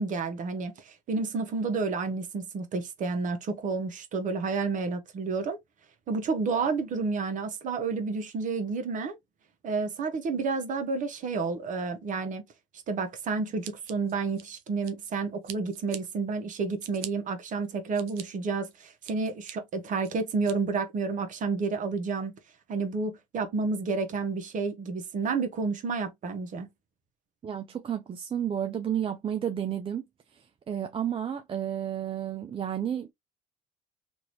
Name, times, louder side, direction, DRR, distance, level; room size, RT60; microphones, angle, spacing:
voice 1, 0.0-5.6 6.1-9.2 9.6-12.4 12.9-22.3 22.7-26.7, right 4 dB, 45° right, 1.0 m, -30 dB
Scissors, 13.6-15.1 15.4-16.0 16.5-17.1 17.6-18.2 18.7-19.5 20.0-20.5, right 12 dB, 80° right, 0.5 m, -43 dB
voice 2, 27.4-30.0 30.7-33.1, right 9 dB, 30° right, 0.5 m, -31 dB
3.0 x 2.6 x 2.9 m
hypercardioid pair, 65°, 18 cm